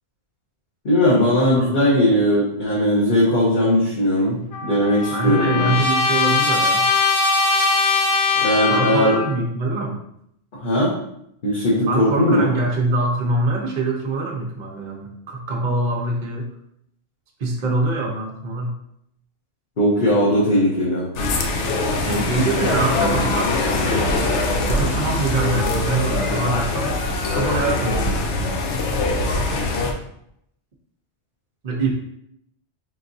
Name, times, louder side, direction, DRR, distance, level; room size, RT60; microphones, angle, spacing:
voice 1, 0.8-5.8 8.4-9.1 10.5-10.9 11.4-12.5 19.8-21.1, equal, 50° left, -7 dB, 1.0 m, -18 dB
voice 2, 1.5-2.0 5.1-6.9 8.7-10.0 11.9-16.5 17.4-18.8 22.0-24.1 24.7-27.0 27.3-28.1 31.6-31.9, right 2 dB, 50° right, -1 dB, 0.6 m, -24 dB
Trumpet, 4.5-9.4, left 4 dB, 70° left, 0.3 m, -20 dB
sound 1, 21.2-29.9, left 2 dB, 85° left, 0.9 m, -22 dB
3.8 x 3.5 x 2.6 m, 0.74 s
omnidirectional pair, 1.2 m